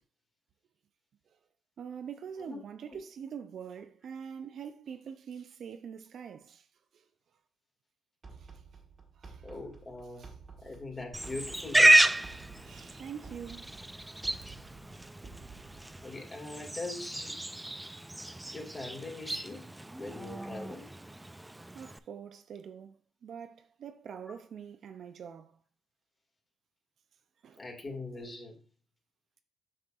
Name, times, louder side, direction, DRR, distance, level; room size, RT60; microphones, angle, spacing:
voice 1, 1.8-6.7 6.9-7.0 8.4-8.6 9.2-9.5 10.2-10.3 12.2-13.7 21.7-25.6 27.4-27.6, right 7 dB, 65° right, 0.5 m, -44 dB
sound 1, 8.2-16.1, right 4 dB, 40° right, 1.5 m, -52 dB
voice 2, 9.4-10.2 10.6-12.1 16.0-17.3 18.5-19.6 19.9-20.9 27.6-28.6, left 2 dB, 30° left, 2.2 m, -41 dB
Livestock farm animals working animals, 11.1-22.0, right 1 dB, 10° right, 0.3 m, -30 dB
7.8 x 5.8 x 2.5 m
cardioid pair, 85°, 0 cm